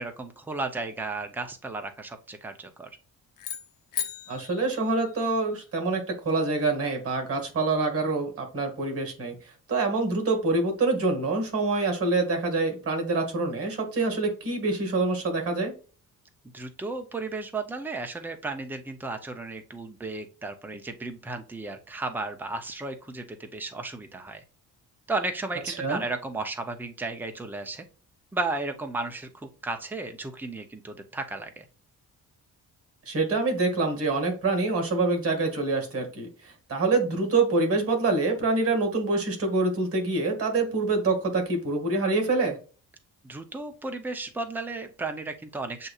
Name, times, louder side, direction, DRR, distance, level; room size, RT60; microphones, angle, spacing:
voice 1, 0.0-2.9 16.5-24.4 25.1-27.8 28.3-31.7 43.2-45.9, right 3 dB, 5° right, 5 dB, 0.5 m, -34 dB
sound 1, 3.4-5.7, left 9 dB, 80° left, 0.8 m, -37 dB
voice 2, 4.3-15.7 25.7-26.0 33.1-42.6, right 3 dB, 45° right, 4 dB, 2.0 m, -26 dB
7.6 x 2.7 x 2.3 m, 0.36 s
cardioid pair, 140°, 32 cm